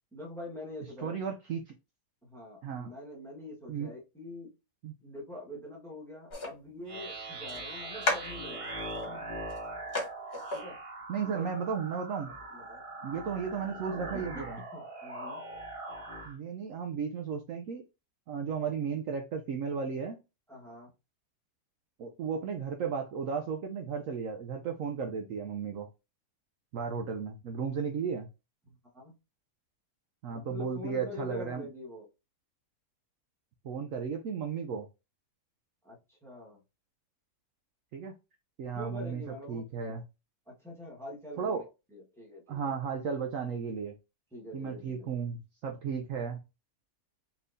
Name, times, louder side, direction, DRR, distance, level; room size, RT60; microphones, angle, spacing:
voice 1, 0.1-1.2 2.2-4.5 5.0-8.7 9.0-9.3 10.5-10.8 11.2-11.5 12.2-12.8 14.1-14.4 14.7-15.4 20.5-20.9 28.7-29.2 30.3-32.1 35.8-36.6 38.7-39.6 39.9-40.0 40.5-41.6 41.9-42.7 44.3-45.1, left 2 dB, ahead, -4 dB, 1.2 m, -45 dB
voice 2, 1.0-1.7 2.6-2.9 3.7-3.9 4.8-4.9 11.1-12.3 13.0-14.6 16.3-17.8 18.3-20.2 22.0-25.9 26.7-28.3 30.2-31.7 33.6-34.9 37.9-38.1 38.6-39.2 39.5-40.0 41.4-41.6 42.5-43.9 44.5-46.4, right 6 dB, 70° right, 4 dB, 0.8 m, -34 dB
sound 1, 6.3-6.5 7.5-7.6 8.0-9.1 9.5-9.6 9.9-10.1 10.3-10.6, left 2 dB, 40° left, 1.3 m, -33 dB
sound 2, 6.9-16.3, right 2 dB, 20° right, 1.1 m, -41 dB
4.2 x 3.5 x 2.6 m, 0.27 s
omnidirectional pair, 1.8 m